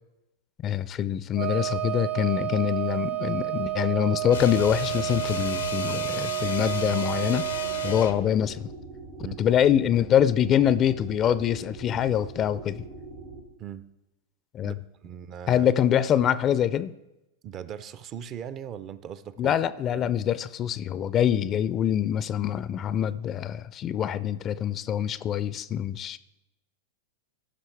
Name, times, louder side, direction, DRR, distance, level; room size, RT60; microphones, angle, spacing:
voice 1, 0.6-7.5 7.8-8.7 9.4-12.8 14.5-14.8 15.5-16.9 19.4-26.2, left 10 dB, 35° left, 0.4 m, -25 dB
Wind instrument woodwind instrument, 1.3-8.1, right 17 dB, 60° right, 1.1 m, -30 dB
sound 1, 4.3-8.3, left 7 dB, 80° left, 0.6 m, -35 dB
sound 2, 6.5-13.4, right 2 dB, 85° right, 1.9 m, -43 dB
voice 2, 14.6-15.7 17.4-19.6 20.0-20.1, right 9 dB, 40° right, 0.5 m, -39 dB
15.0 x 5.7 x 3.4 m
hypercardioid pair, 100°, 0 cm